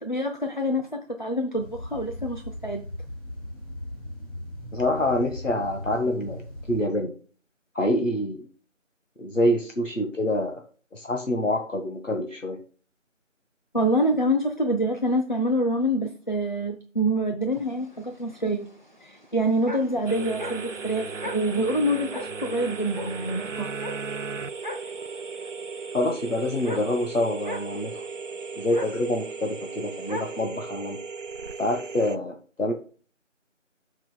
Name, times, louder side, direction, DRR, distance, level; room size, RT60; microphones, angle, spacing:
voice 1, 0.0-2.8 13.7-18.7 19.0-23.7, equal, 40° left, 4 dB, 0.6 m, -26 dB
sound 1, 1.6-6.8, left 1 dB, 15° left, 3.9 m, -38 dB
voice 2, 4.7-6.4 6.7-7.1 7.7-8.4 9.2-10.6 10.9-12.6 25.9-28.0 28.6-31.0 31.6-32.7, left 1 dB, 75° left, 3 dB, 1.6 m, -26 dB
sound 2, 17.5-30.4, left 1 dB, 40° right, 0.8 m, -41 dB
sound 3, 20.1-32.2, right 5 dB, 70° right, 0.6 m, -36 dB
12.0 x 5.9 x 2.2 m, 0.40 s
figure-of-eight pair, 175°, 38 cm